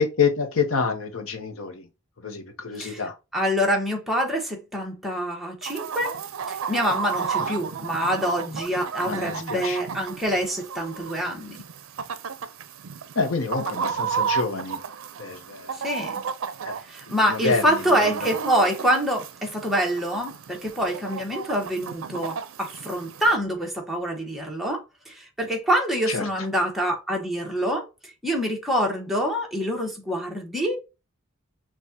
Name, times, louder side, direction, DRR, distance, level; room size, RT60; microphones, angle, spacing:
voice 1, 0.0-1.9 2.2-3.1 7.4-7.5 9.0-9.8 13.1-14.8 15.2-15.8 16.6-16.8 17.3-18.3 26.1-26.3, left 5 dB, 80° left, 0.8 m, -27 dB
voice 2, 3.3-6.2 6.5-11.6 15.7-16.2 16.9-27.9 28.2-30.8, equal, ahead, 1.1 m, -26 dB
Chicken rooster, 5.6-23.4, right 7 dB, 75° right, 0.5 m, -33 dB
6.3 x 2.4 x 2.7 m
head